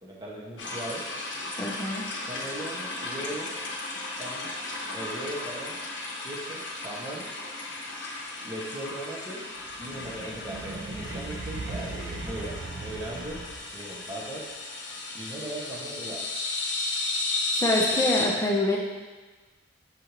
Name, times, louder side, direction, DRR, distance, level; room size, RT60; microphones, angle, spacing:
voice 1, 0.0-1.1 2.3-3.6 4.2-4.5 4.9-5.8 6.2-7.3 8.4-9.5 9.8-13.4 13.7-14.5 15.1-16.3, right 1 dB, 20° right, -4 dB, 0.7 m, -38 dB
sound 1, 0.6-18.3, left 2 dB, 75° left, 0.7 m, -34 dB
voice 2, 1.6-2.0 17.6-18.8, left 1 dB, 15° left, -2 dB, 0.5 m, -25 dB
sound 2, 9.7-13.9, right 3 dB, 55° right, 0.4 m, -38 dB
6.5 x 2.6 x 2.9 m, 1.3 s
head